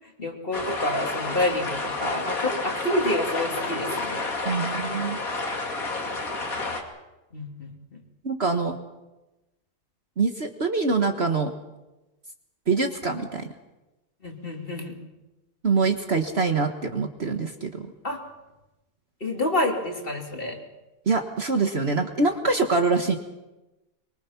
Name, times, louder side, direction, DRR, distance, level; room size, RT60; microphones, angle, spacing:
voice 1, 0.2-4.2 7.3-8.0 14.2-14.9 18.0-18.2 19.2-20.6, left 1 dB, 35° left, 2 dB, 3.1 m, -28 dB
sound 1, 0.5-6.8, left 3 dB, 60° left, 2.8 m, -30 dB
voice 2, 4.4-5.2 8.2-8.8 10.2-11.5 12.7-13.5 15.6-17.9 21.1-23.2, right 4 dB, 45° right, 6 dB, 1.5 m, -24 dB
24.0 x 23.5 x 5.9 m, 1.0 s
omnidirectional pair, 1.6 m